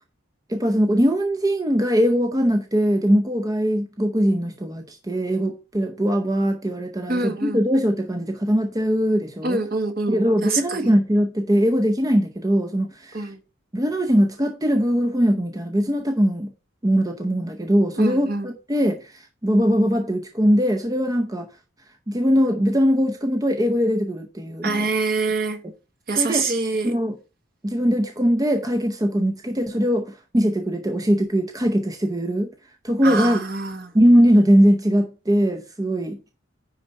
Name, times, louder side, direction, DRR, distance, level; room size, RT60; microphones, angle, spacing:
voice 1, 0.5-9.6 10.1-13.3 13.7-16.5 16.8-21.5 22.1-24.9 26.2-26.5 26.8-27.1 27.6-32.5 32.8-33.4 33.9-36.2, equal, 20° right, 0.7 m, -21 dB
voice 2, 7.1-7.6 9.4-10.9 13.1-13.4 18.0-18.5 24.6-25.6 26.1-26.9 33.0-33.9, right 3 dB, 50° right, 1.4 m, -25 dB
9.8 x 4.0 x 5.4 m
head